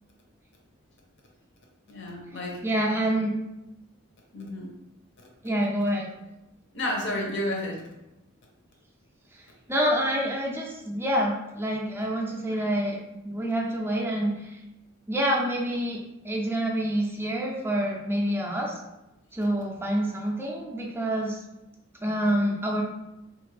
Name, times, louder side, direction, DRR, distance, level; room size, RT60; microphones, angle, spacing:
voice 1, 1.9-2.6 4.3-4.7 6.7-7.8, left 1 dB, 60° left, 0 dB, 0.7 m, -31 dB
voice 2, 2.6-3.3 5.4-6.1 9.3-9.4 9.7-13.0 13.2-14.6 15.1-16.0 16.2-18.8 19.3-21.4 22.0-22.8, equal, 10° right, -2 dB, 0.4 m, -27 dB
2.8 x 2.4 x 3.2 m, 0.94 s
head